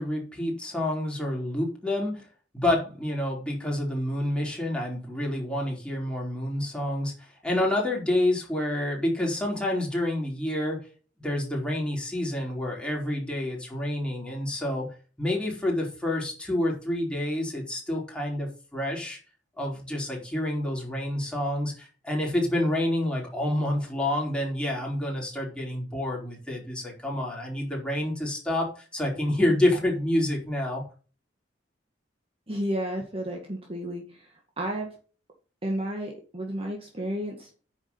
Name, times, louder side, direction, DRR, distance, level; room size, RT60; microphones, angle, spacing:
voice 1, 0.0-2.2 2.5-10.8 11.2-14.9 15.2-19.2 19.6-30.8, left 1 dB, 5° left, -3 dB, 4.6 m, -28 dB
voice 2, 32.5-34.3 34.6-34.9 35.6-37.5, right 1 dB, 30° right, 1 dB, 2.0 m, -32 dB
9.7 x 7.5 x 5.6 m, 0.38 s
head